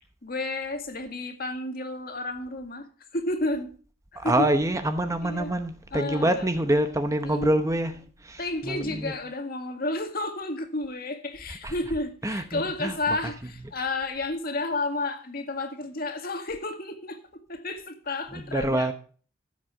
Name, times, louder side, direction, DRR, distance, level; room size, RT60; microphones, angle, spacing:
voice 1, 0.2-2.9 3.1-3.7 4.1-4.5 5.2-5.5 5.9-6.4 7.2-7.5 8.4-17.2 17.5-18.9, left 2 dB, 50° left, 2.0 m, -31 dB
voice 2, 4.2-9.1 11.6-11.7 12.2-13.0 18.5-18.9, right 1 dB, 15° right, 0.8 m, -26 dB
14.5 x 7.9 x 4.8 m
head